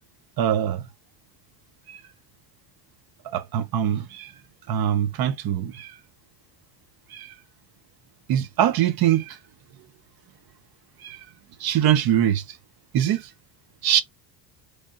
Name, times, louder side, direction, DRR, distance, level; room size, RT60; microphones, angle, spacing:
voice 1, 0.4-0.8 1.9-2.0 3.2-4.3 4.7-5.9 7.1-7.3 8.3-9.4 11.0-11.2 11.6-12.4 12.9-13.3 13.8-14.0, right 10 dB, 50° right, 0.8 m, -23 dB
3.4 x 2.4 x 3.9 m
cardioid pair, 125°, 47 cm